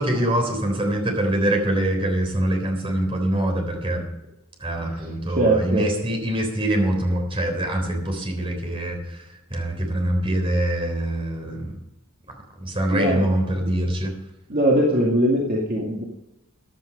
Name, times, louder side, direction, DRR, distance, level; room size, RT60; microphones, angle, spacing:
voice 1, 0.0-4.1 4.6-11.7 12.6-14.1, right 1 dB, 25° right, 3 dB, 3.6 m, -24 dB
voice 2, 5.3-5.9 12.9-13.2 14.5-16.0, right 1 dB, 40° right, -2 dB, 2.3 m, -20 dB
15.0 x 10.5 x 5.3 m, 0.92 s
head